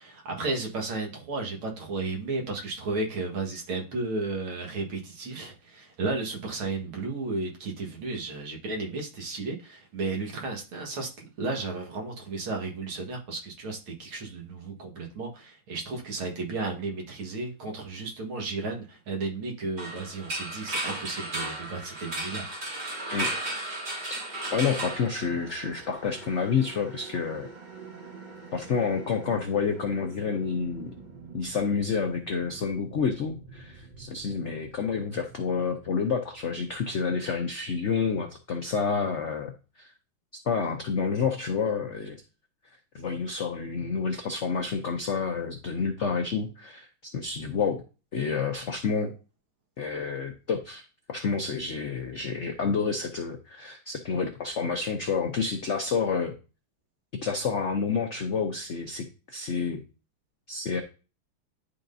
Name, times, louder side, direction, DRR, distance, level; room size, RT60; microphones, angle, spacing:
voice 1, 0.0-11.1 11.4-22.9, right 3 dB, 80° right, 1 dB, 2.4 m, -33 dB
sound 1, 19.8-25.8, right 2 dB, 55° right, 3.4 m, -34 dB
sound 2, 23.3-38.5, right 4 dB, 30° right, 0.9 m, -48 dB
voice 2, 24.5-27.5 28.5-30.9 31.3-39.5 39.8-39.9 40.5-42.2 42.9-47.8 48.1-49.1 49.8-56.3 57.2-59.8 60.5-60.8, left 5 dB, 80° left, 5 dB, 0.6 m, -29 dB
11.5 x 3.9 x 2.6 m, 0.33 s
omnidirectional pair, 2.3 m